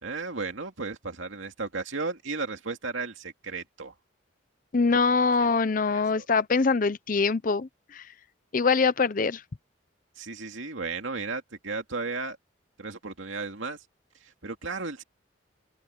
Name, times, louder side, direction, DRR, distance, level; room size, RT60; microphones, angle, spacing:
voice 1, 0.0-3.9 5.4-5.5 5.9-6.3 10.2-12.4 12.8-13.8 14.2-15.0, right 4 dB, 85° right, 2.4 m, -34 dB
voice 2, 4.7-8.1 8.5-9.4, left 4 dB, 45° left, 0.6 m, -24 dB
open air
head